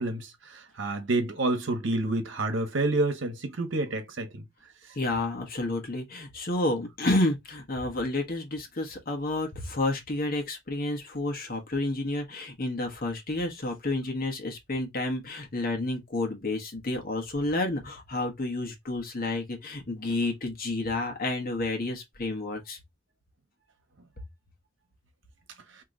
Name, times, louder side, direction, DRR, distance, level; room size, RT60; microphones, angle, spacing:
voice 1, 0.0-4.4, right 2 dB, 65° right, 1.1 m, -29 dB
voice 2, 4.9-22.8, left 2 dB, 50° left, 1.2 m, -30 dB
3.0 x 2.9 x 3.8 m
head